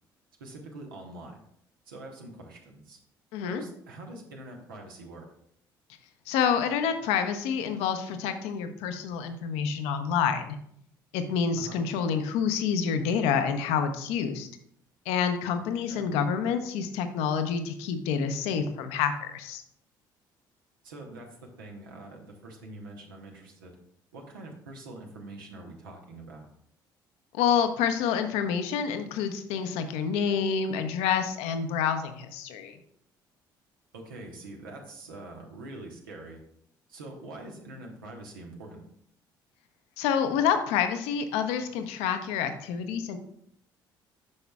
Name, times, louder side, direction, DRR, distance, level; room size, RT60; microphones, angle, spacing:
voice 1, 0.4-1.4 1.9-3.0 3.4-5.3 11.6-11.8 15.9-16.1 20.8-23.7 24.1-26.5 33.9-36.4 36.9-38.8, right 2 dB, 80° right, 1 dB, 1.1 m, -44 dB
voice 2, 3.3-3.6 6.3-10.6 11.1-14.5 15.1-19.6 27.3-32.8 40.0-43.2, left 7 dB, 70° left, 8 dB, 0.7 m, -28 dB
9.6 x 5.7 x 2.3 m, 0.70 s
hypercardioid pair, 50°, 11 cm